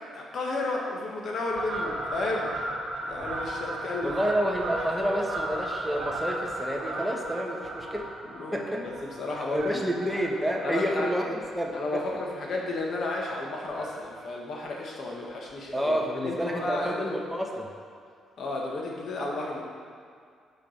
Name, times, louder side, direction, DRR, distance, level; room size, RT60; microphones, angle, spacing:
voice 1, 0.1-2.5 3.0-4.2 8.2-10.0 10.6-11.1 11.7-16.0 16.2-17.2 18.4-19.6, left 2 dB, 55° left, -1 dB, 1.6 m, -32 dB
Fowl, 1.5-12.3 12.7-13.0 13.7-14.3 14.6-14.7 14.9-15.0 15.3-15.4 15.7-15.9 16.9-17.0 17.5-17.6, right 1 dB, 60° right, 1.7 m, -36 dB
voice 2, 4.0-8.1 8.5-8.9 9.5-12.0 15.7-17.7, equal, ahead, 0 dB, 1.2 m, -29 dB
6.7 x 5.2 x 6.5 m, 2.2 s
cardioid pair, 90°, 0 cm